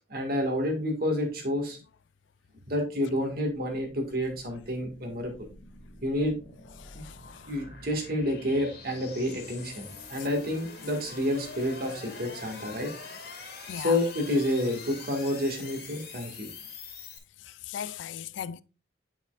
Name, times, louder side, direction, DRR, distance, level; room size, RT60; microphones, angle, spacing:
voice 1, 0.0-1.8 2.7-5.5 6.0-6.4 6.9-7.0 7.5-12.9 13.7-16.5, left 1 dB, 55° right, 2.0 m, -29 dB
sound 1, 3.9-17.2, left 4 dB, 60° left, 2.2 m, -45 dB
voice 2, 6.8-7.4 13.7-14.0 17.5-18.6, left 9 dB, 75° left, 0.3 m, -38 dB
8.9 x 5.7 x 2.5 m
head